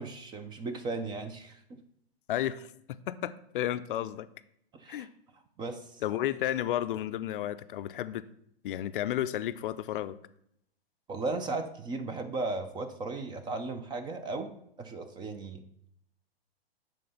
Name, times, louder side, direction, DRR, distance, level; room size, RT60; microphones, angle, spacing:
voice 1, 0.0-1.8 4.7-5.1 5.6-6.0 11.1-14.5 14.8-15.6, right 3 dB, 15° right, 8 dB, 0.4 m, -36 dB
voice 2, 2.3-4.3 4.9-5.1 6.0-8.3 8.6-10.2, left 12 dB, 60° left, 14 dB, 0.4 m, -32 dB
7.6 x 3.7 x 5.4 m, 0.72 s
hypercardioid pair, 120°, 31 cm